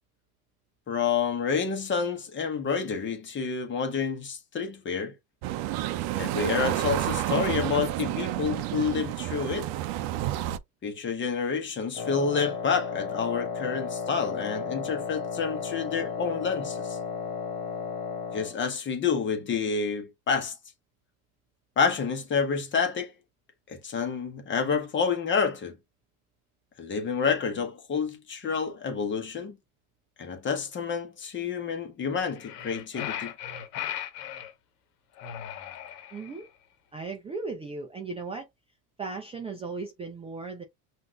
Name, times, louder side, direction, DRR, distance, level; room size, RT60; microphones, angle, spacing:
voice 1, 0.9-5.1 6.2-9.7 10.8-17.0 18.3-20.6 21.8-23.1 23.7-25.8 26.8-29.6 30.2-33.3, left 5 dB, 25° left, 1.1 m, -29 dB
sound 1, 5.4-10.6, right 14 dB, 60° right, 0.6 m, -30 dB
Wind instrument woodwind instrument, 11.9-18.6, left 6 dB, 50° left, 1.4 m, -34 dB
sound 2, 32.3-34.5 35.2-36.4, left 10 dB, 90° left, 1.1 m, -37 dB
voice 2, 36.1-36.5 36.9-38.5 39.0-40.6, right 4 dB, 15° right, 0.5 m, -36 dB
5.7 x 2.7 x 2.3 m
supercardioid pair, 130°, 45 cm